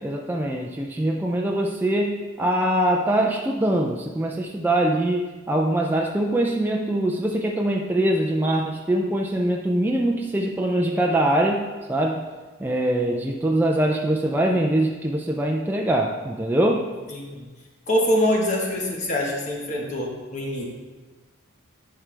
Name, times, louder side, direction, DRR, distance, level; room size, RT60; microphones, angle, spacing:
voice 1, 0.0-12.3 12.6-16.9, right 1 dB, 10° right, 0 dB, 0.4 m, -23 dB
voice 2, 17.1-17.5 17.9-20.6, left 1 dB, 35° left, -1 dB, 1.3 m, -24 dB
11.0 x 4.6 x 3.3 m, 1.3 s
head